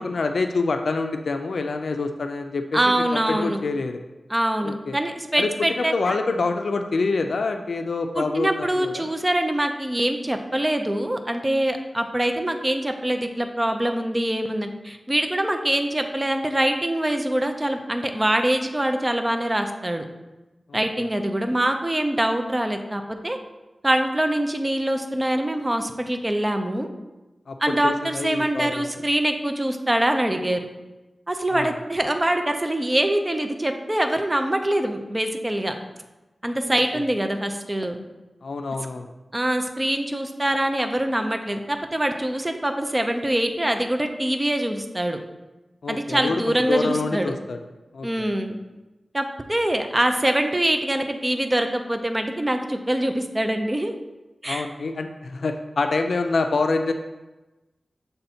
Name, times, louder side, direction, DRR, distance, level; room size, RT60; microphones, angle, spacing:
voice 1, 0.0-4.0 4.6-5.0 5.4-5.5 5.8-9.1 20.7-20.8 27.5-28.9 31.5-31.7 36.7-37.0 38.4-39.1 45.8-46.4 46.7-47.6 47.9-48.3 54.5-56.9, left 3 dB, 80° left, 6 dB, 0.4 m, -26 dB
voice 2, 2.7-3.6 4.3-6.2 8.2-20.1 20.7-23.4 23.8-26.9 27.6-30.7 31.3-35.8 36.4-38.0 39.3-45.2 45.9-47.3 48.0-48.6 49.1-53.9 54.4-54.7, right 1 dB, 20° right, 5 dB, 0.5 m, -24 dB
6.8 x 3.4 x 4.2 m, 1.1 s
wide cardioid pair, 90°, 0 cm